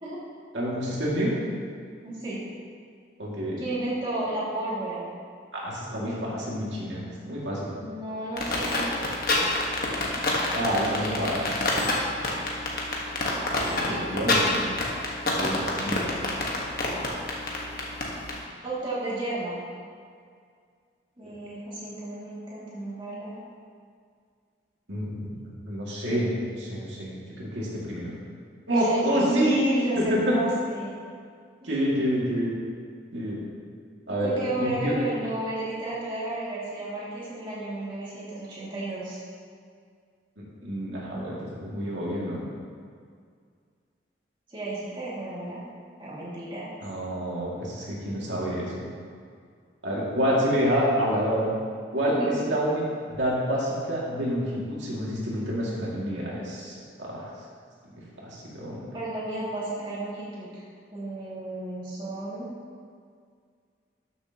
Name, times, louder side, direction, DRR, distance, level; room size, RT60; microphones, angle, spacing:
voice 1, 0.5-1.3 3.2-3.6 5.5-7.7 10.5-11.4 13.7-14.6 15.4-16.0 21.2-21.3 24.9-25.4 25.7-28.1 28.7-29.6 29.9-30.3 31.6-32.5 33.1-33.4 34.1-34.3 34.6-34.9 40.4-42.4 46.8-48.8 49.8-51.5 51.9-52.2 52.4-52.8 53.2-57.2 58.2-58.8, equal, 80° right, -5 dB, 2.3 m, -28 dB
voice 2, 2.0-2.4 3.6-5.1 7.8-8.9 10.9-11.2 13.7-14.1 15.8-16.1 18.6-19.6 21.2-23.4 28.8-29.0 29.2-30.9 31.6-31.8 34.2-39.2 44.5-45.6 46.0-46.7 52.1-52.6 58.9-60.6 60.9-62.5, right 1 dB, 25° right, -9 dB, 2.3 m, -32 dB
sound 1, 8.4-18.3, left 2 dB, 50° left, 1.4 m, -26 dB
13.0 x 7.0 x 3.0 m, 2.1 s
head